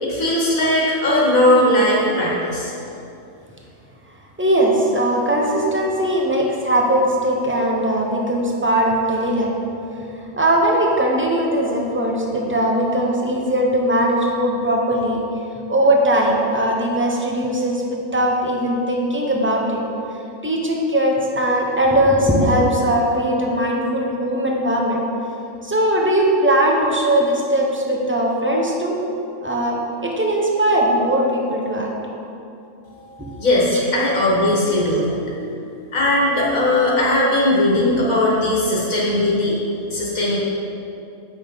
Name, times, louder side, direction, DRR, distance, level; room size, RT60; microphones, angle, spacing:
voice 1, 0.0-2.7 33.0-35.1 35.9-39.6 39.9-40.4, left 1 dB, 70° left, -5 dB, 1.9 m, -18 dB
voice 2, 4.4-9.5 10.4-15.2 15.7-19.8 20.4-25.0 25.6-28.9 29.4-31.9 33.2-33.3 33.7-33.8, right 1 dB, 10° right, -1 dB, 0.8 m, -19 dB
7.8 x 6.0 x 5.2 m, 2.7 s
omnidirectional pair, 1.5 m